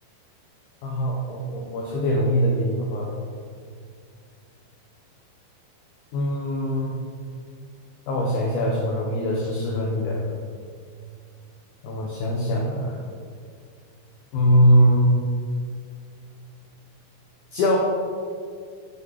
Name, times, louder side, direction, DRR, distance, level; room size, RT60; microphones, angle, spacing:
voice 1, 0.8-3.1 6.1-7.0 8.1-10.2 11.8-13.0 14.3-15.1 17.5-17.8, equal, 75° left, -1 dB, 1.9 m, -22 dB
12.0 x 6.1 x 3.6 m, 2.2 s
omnidirectional pair, 4.5 m